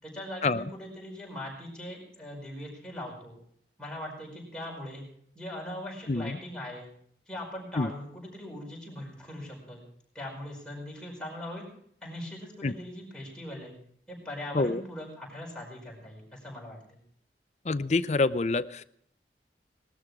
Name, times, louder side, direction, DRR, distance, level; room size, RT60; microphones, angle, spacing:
voice 1, 0.0-3.4 3.8-5.0 5.3-6.9 7.3-9.8 10.1-11.7 12.0-13.7 14.1-17.0, left 1 dB, 5° left, -3 dB, 5.1 m, -40 dB
voice 2, 6.1-6.4 7.8-7.9 12.6-12.7 14.5-14.8 17.6-18.8, left 3 dB, 40° left, 13 dB, 0.5 m, -27 dB
19.0 x 12.5 x 4.9 m, 0.66 s
head